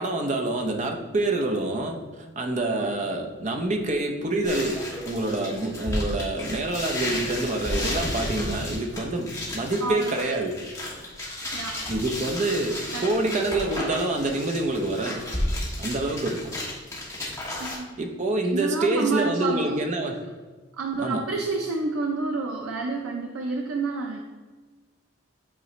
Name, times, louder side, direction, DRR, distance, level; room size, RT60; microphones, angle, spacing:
voice 1, 0.0-10.5 11.9-15.3 15.8-16.4 18.0-20.2 21.0-21.2, right 2 dB, 35° right, 3 dB, 0.6 m, -27 dB
sound 1, 4.4-17.8, left 1 dB, 15° left, 1.2 m, -32 dB
voice 2, 9.8-10.4 11.5-11.8 12.9-13.1 17.6-18.0 18.5-19.9 20.8-24.2, right 3 dB, 90° right, 1 dB, 0.6 m, -29 dB
8.1 x 3.8 x 3.1 m, 1.4 s
head